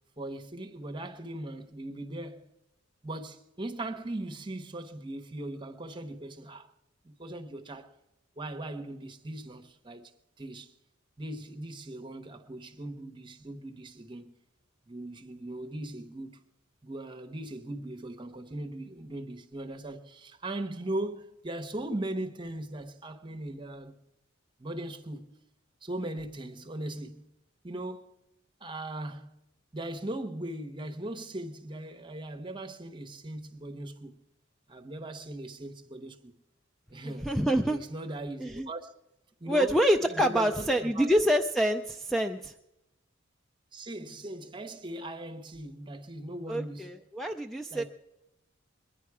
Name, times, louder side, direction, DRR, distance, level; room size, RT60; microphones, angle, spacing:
voice 1, 0.2-2.5 3.0-6.7 7.0-7.9 8.4-10.1 10.4-10.7 11.2-14.3 14.9-16.4 16.8-23.9 24.6-25.3 25.8-27.3 27.6-28.1 28.6-29.3 29.7-34.2 34.7-36.3 36.9-37.3 37.6-38.9 39.4-41.1 43.7-46.9 47.7-47.8, right 1 dB, 25° right, 1.0 m, -39 dB
voice 2, 37.0-37.8 38.4-38.7 39.5-42.5 46.5-47.8, equal, ahead, 0.4 m, -26 dB
21.5 x 10.0 x 4.8 m
head